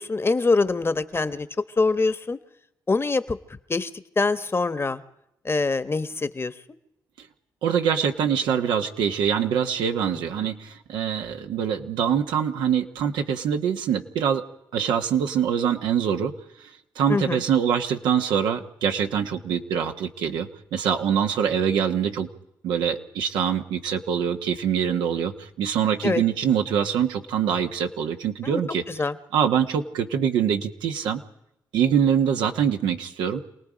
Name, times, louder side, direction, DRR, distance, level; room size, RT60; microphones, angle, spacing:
voice 1, 0.0-1.5 1.8-2.4 2.9-3.4 3.7-3.9 4.2-5.0 5.4-6.5 10.4-10.5 17.1-17.4 26.0-26.2 28.4-28.6 28.9-29.2, left 3 dB, 35° left, 13 dB, 1.2 m, -24 dB
voice 2, 7.6-14.4 14.7-16.3 16.6-22.3 22.6-28.8 29.3-31.2 31.7-33.4, right 8 dB, 90° right, 5 dB, 1.2 m, -24 dB
27.5 x 18.5 x 5.1 m, 0.82 s
supercardioid pair, 55°, 8 cm